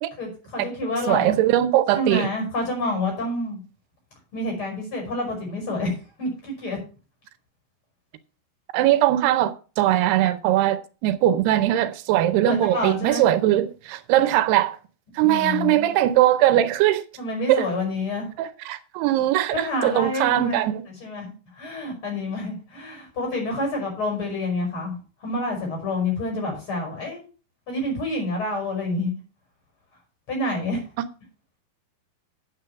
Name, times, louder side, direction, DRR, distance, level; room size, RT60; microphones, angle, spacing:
voice 1, 0.2-1.3 1.9-3.6 4.3-5.9 6.2-6.8 12.5-13.3 15.2-15.9 17.2-18.3 19.5-21.3 21.6-27.2 27.7-29.1 30.3-30.8, left 2 dB, 30° left, 6.0 m, -28 dB
voice 2, 1.1-2.3 8.7-14.8 15.2-17.0 17.5-17.7 18.4-20.9, right 13 dB, 85° right, 2.7 m, -20 dB
9.0 x 8.4 x 5.7 m
omnidirectional pair, 4.6 m